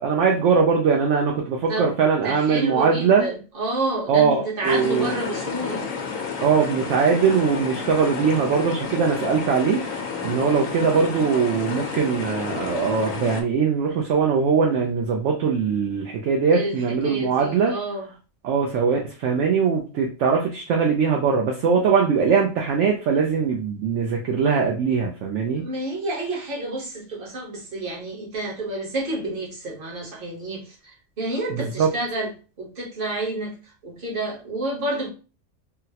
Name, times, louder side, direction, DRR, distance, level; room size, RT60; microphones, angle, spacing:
voice 1, 0.0-3.3 4.1-5.1 6.4-17.7 18.4-25.6 31.5-31.9, right 5 dB, 70° right, 0.9 m, -21 dB
voice 2, 1.7-5.9 16.5-18.0 25.6-32.3 32.6-35.1, right 2 dB, 45° right, 1.2 m, -29 dB
sound 1, 4.6-13.4, left 5 dB, 85° left, 1.1 m, -31 dB
3.9 x 2.0 x 2.8 m
omnidirectional pair, 1.4 m